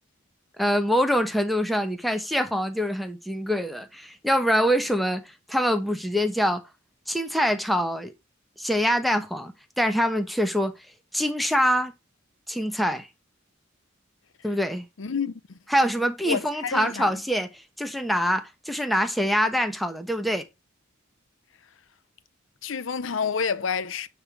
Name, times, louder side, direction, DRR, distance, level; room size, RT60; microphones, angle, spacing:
voice 1, 0.6-6.6 7.1-8.1 8.6-10.7 11.1-11.9 12.5-13.1 14.4-14.8 15.7-20.4, equal, ahead, 1.0 m, -25 dB
voice 2, 15.0-15.6 16.2-17.1 22.6-24.1, left 6 dB, 70° left, 0.7 m, -29 dB
9.5 x 3.3 x 5.1 m
head